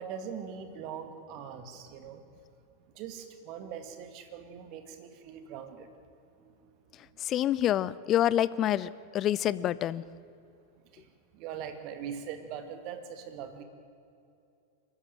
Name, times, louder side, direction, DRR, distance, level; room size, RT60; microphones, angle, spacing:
voice 1, 0.0-2.2 2.9-5.9 6.4-6.5 10.9-11.1 11.3-13.6, right 7 dB, 40° right, 8 dB, 2.1 m, -41 dB
voice 2, 7.2-10.0, left 12 dB, 30° left, 19 dB, 0.6 m, -27 dB
24.0 x 14.0 x 9.1 m, 2.6 s
figure-of-eight pair, 90°, 0 cm